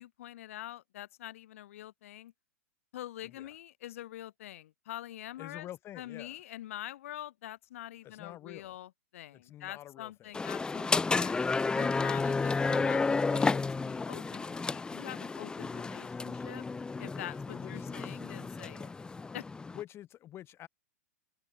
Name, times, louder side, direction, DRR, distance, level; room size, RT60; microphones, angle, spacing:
voice 1, 0.0-2.3 2.9-5.7 6.0-11.3 11.7-16.6 17.0-18.9 19.3-19.5, left 13 dB, 65° left, 4.7 m, -45 dB
voice 2, 3.2-3.5 5.4-6.4 8.0-8.8 9.3-10.4 17.3-18.2 19.7-20.7, left 13 dB, 30° left, 4.2 m, -48 dB
sound 1, 10.3-19.8, left 4 dB, 10° left, 1.0 m, -32 dB
hypercardioid pair, 110°, 8 cm